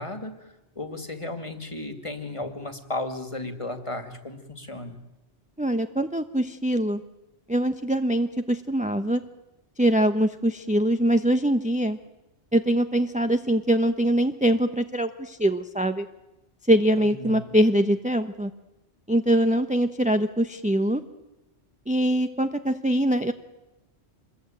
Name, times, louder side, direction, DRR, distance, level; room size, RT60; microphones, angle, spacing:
voice 1, 0.0-5.0 16.9-17.6, left 2 dB, 25° left, 7 dB, 2.5 m, -35 dB
voice 2, 5.6-7.0 7.5-9.2 9.8-12.0 12.5-16.1 16.7-18.5 19.1-21.0 21.9-23.3, right 1 dB, 5° right, 8 dB, 1.0 m, -23 dB
27.5 x 22.0 x 9.1 m, 1.0 s
omnidirectional pair, 1.2 m